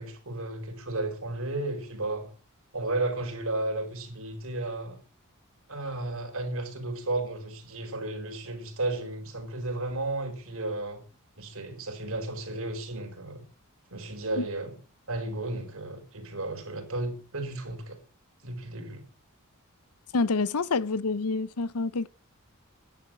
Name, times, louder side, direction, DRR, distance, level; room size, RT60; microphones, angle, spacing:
voice 1, 0.0-2.3 2.7-5.0 5.7-11.0 11.4-13.5 13.9-14.8 15.1-18.0 18.4-19.0, right 2 dB, 65° right, 4.5 m, -33 dB
voice 2, 20.1-22.1, left 3 dB, 85° left, 0.7 m, -27 dB
11.5 x 10.5 x 7.4 m
head